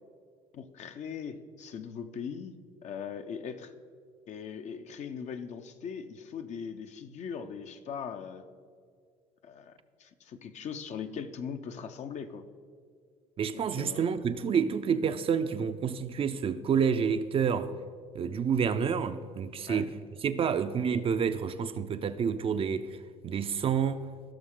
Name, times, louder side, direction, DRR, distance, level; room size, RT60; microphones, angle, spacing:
voice 1, 0.5-2.6 2.8-3.7 4.3-8.5 9.4-12.4 13.5-14.1 19.7-19.9, left 7 dB, 50° left, 0.7 m, -40 dB
voice 2, 13.4-17.7 18.1-19.9 20.2-22.9 23.2-24.1, right 7 dB, 40° right, 0.6 m, -28 dB
16.5 x 6.2 x 3.8 m
hypercardioid pair, 70°, 15 cm